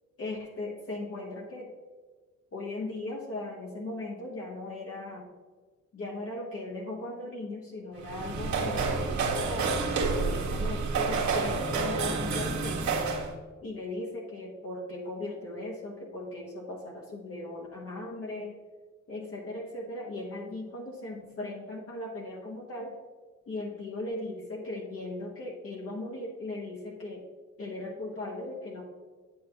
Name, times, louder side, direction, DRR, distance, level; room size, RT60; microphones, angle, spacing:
voice 1, 0.2-1.7 2.5-5.3 5.9-9.7 10.3-12.9 13.6-18.5 19.1-22.9 23.5-27.3 27.6-28.8, left 2 dB, 50° left, -3 dB, 1.5 m, -38 dB
sound 1, 8.0-13.3, right 4 dB, 70° right, 1.6 m, -29 dB
8.5 x 8.4 x 3.0 m, 1.4 s
cardioid pair, 90°, 30 cm